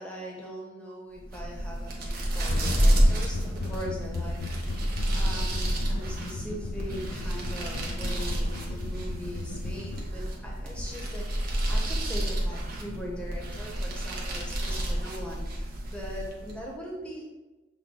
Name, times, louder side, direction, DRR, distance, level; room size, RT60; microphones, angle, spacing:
voice 1, 0.0-4.8 5.1-17.4, equal, 5° left, -3 dB, 0.8 m, -41 dB
sound 1, 1.2-16.7, right 1 dB, 50° right, 0.9 m, -29 dB
sound 2, 2.4-10.0, left 3 dB, 70° left, 0.4 m, -38 dB
6.5 x 2.2 x 3.7 m, 1.1 s
head